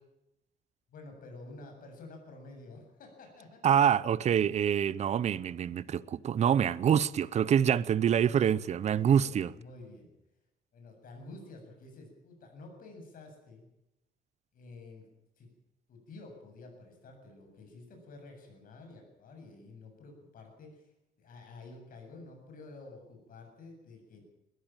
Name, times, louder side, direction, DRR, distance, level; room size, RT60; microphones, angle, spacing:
voice 1, 0.9-3.6 8.9-10.1 10.7-13.7 14.5-15.1 15.4-15.5 15.9-24.2, left 2 dB, 60° left, 7.6 m, -50 dB
voice 2, 3.6-9.5, right 8 dB, 45° right, 0.7 m, -26 dB
21.0 x 14.5 x 9.1 m
cardioid pair, 140°, 16 cm